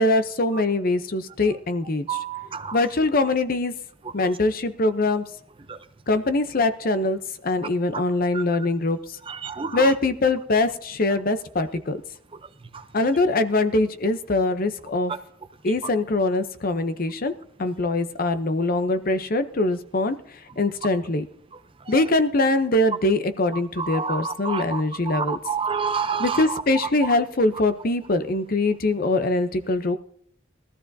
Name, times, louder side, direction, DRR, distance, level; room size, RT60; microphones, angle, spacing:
voice 1, 0.0-2.2 2.7-3.7 4.1-5.2 6.1-9.2 9.7-12.0 12.9-15.1 15.6-17.3 17.6-20.2 20.6-21.2 21.9-25.4 26.2-30.0, left 2 dB, 45° left, 0.7 m, -23 dB
voice 2, 2.1-2.8 4.2-4.3 5.7-5.8 7.9-8.0 8.3-8.4 9.3-9.9 12.7-12.8 23.8-26.6, right 6 dB, 25° right, 0.6 m, -29 dB
21.0 x 13.5 x 2.7 m
head